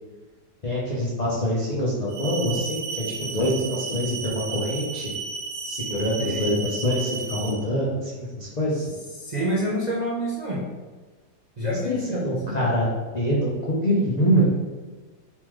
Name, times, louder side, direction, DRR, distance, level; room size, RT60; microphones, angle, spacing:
voice 1, 0.6-5.1 5.7-8.9 11.8-12.9 13.1-14.6, equal, 70° left, -7 dB, 0.4 m, -25 dB
sound 1, 2.1-7.5, right 5 dB, 60° right, 1.0 m, -33 dB
voice 2, 9.2-10.6 11.6-12.6, equal, 75° right, -6 dB, 0.3 m, -28 dB
4.2 x 3.6 x 3.1 m, 1.3 s
omnidirectional pair, 2.0 m